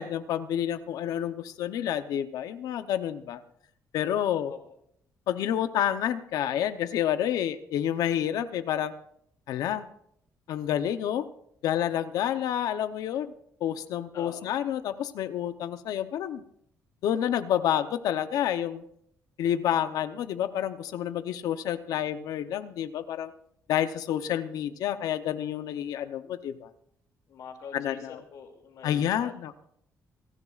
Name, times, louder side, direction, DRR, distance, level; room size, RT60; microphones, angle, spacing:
voice 1, 0.0-3.4 3.9-4.5 5.3-8.9 9.5-9.9 10.5-11.3 11.6-13.3 13.6-16.4 17.0-18.8 19.4-23.3 23.7-26.7 27.7-28.2 28.8-29.6, left 10 dB, 85° left, 11 dB, 0.9 m, -29 dB
voice 2, 14.1-14.5 27.3-29.3, left 6 dB, 70° left, 3 dB, 2.7 m, -44 dB
28.0 x 11.0 x 2.5 m, 0.69 s
cardioid pair, 150°, 6 cm